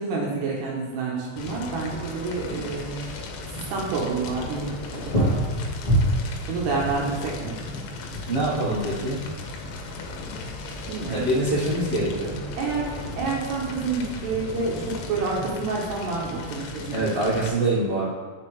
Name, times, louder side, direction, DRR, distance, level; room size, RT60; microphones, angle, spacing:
voice 1, 0.0-3.1 3.5-5.4 6.5-7.6 10.9-11.4 12.5-17.1 17.4-17.6, right 4 dB, 75° right, -3 dB, 2.9 m, -29 dB
Fire, 1.4-17.5, left 3 dB, 85° left, 3.4 m, -36 dB
sound 1, 4.2-11.8, equal, 30° left, 1.2 m, -29 dB
voice 2, 8.2-9.2 11.1-12.4 16.9-18.1, right 1 dB, 90° right, -10 dB, 1.3 m, -24 dB
8.9 x 7.0 x 3.4 m, 1.5 s
omnidirectional pair, 5.5 m